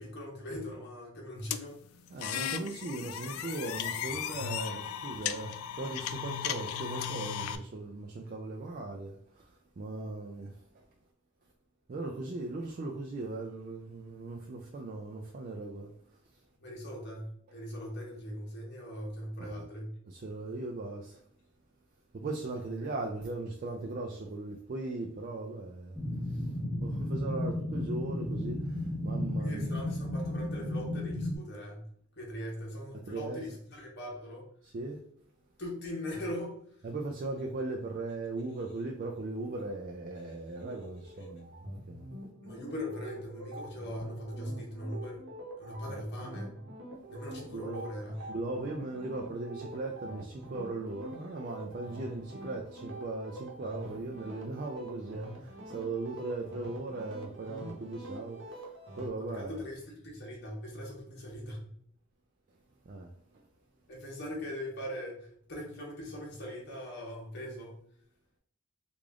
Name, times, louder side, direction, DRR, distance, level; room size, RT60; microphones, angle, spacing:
voice 1, 0.0-1.8 16.6-20.0 22.8-22.9 29.4-34.5 35.6-36.6 40.2-40.4 41.2-41.3 42.4-45.2 45.6-46.6 47.1-48.3 56.0-56.2 59.2-61.7 63.9-67.7, equal, 55° left, 1.1 m, -41 dB
sound 1, 1.5-7.6, left 9 dB, 80° left, 0.3 m, -36 dB
voice 2, 2.1-9.1 9.8-10.5 11.9-15.9 19.4-19.5 20.1-21.2 22.1-26.0 26.8-28.8 29.0-29.9 33.1-33.4 34.7-35.0 36.8-42.0 47.4-47.8 48.3-58.4 59.0-59.6 62.9-63.1, right 2 dB, 45° right, 0.4 m, -38 dB
sound 2, 26.0-31.4, left 1 dB, 10° right, 1.0 m, -33 dB
sound 3, 40.5-59.1, right 1 dB, 60° right, 0.9 m, -45 dB
3.3 x 2.5 x 3.5 m
head